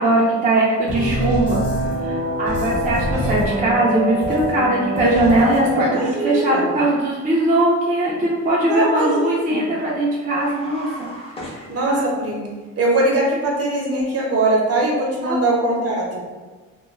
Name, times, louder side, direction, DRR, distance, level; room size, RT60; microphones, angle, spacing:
voice 1, 0.0-1.6 2.0-12.0 15.2-15.4, right 1 dB, 30° right, -5 dB, 0.5 m, -20 dB
sound 1, 0.9-5.9, equal, 35° left, 1.1 m, -24 dB
voice 2, 5.9-6.7 8.7-9.6 11.7-12.5 12.8-16.3, right 2 dB, 50° right, -2 dB, 0.8 m, -21 dB
sound 2, 10.3-12.3, equal, 20° left, 0.6 m, -37 dB
2.3 x 2.2 x 3.1 m, 1.3 s
cardioid pair, 90°, 30 cm